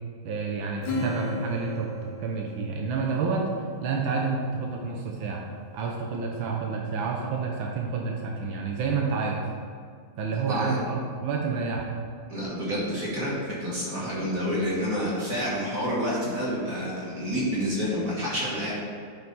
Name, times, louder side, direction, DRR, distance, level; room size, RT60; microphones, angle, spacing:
voice 1, 0.2-3.4 3.8-5.4 5.7-9.4 10.2-11.9, right 4 dB, 80° right, -1 dB, 1.6 m, -29 dB
Acoustic guitar / Strum, 0.8-3.7, left 2 dB, 60° left, 1.5 m, -35 dB
voice 2, 10.5-10.8 12.3-18.7, equal, 45° right, -7 dB, 2.0 m, -29 dB
10.0 x 4.6 x 4.1 m, 2.2 s
omnidirectional pair, 2.1 m